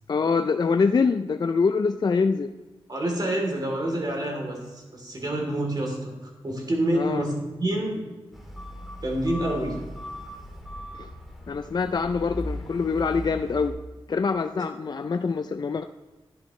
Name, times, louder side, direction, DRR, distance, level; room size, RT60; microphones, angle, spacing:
voice 1, 0.1-2.5 6.9-7.2 11.0-11.1 11.5-13.8 14.1-15.8, left 5 dB, 45° left, 8 dB, 0.4 m, -24 dB
voice 2, 2.9-8.0 9.0-9.8 14.5-14.6, right 1 dB, 45° right, 0 dB, 3.1 m, -28 dB
sound 1, 8.3-13.7, left 1 dB, ahead, 1.9 m, -38 dB
13.0 x 10.5 x 3.2 m, 1.2 s
wide cardioid pair, 75°, 10 cm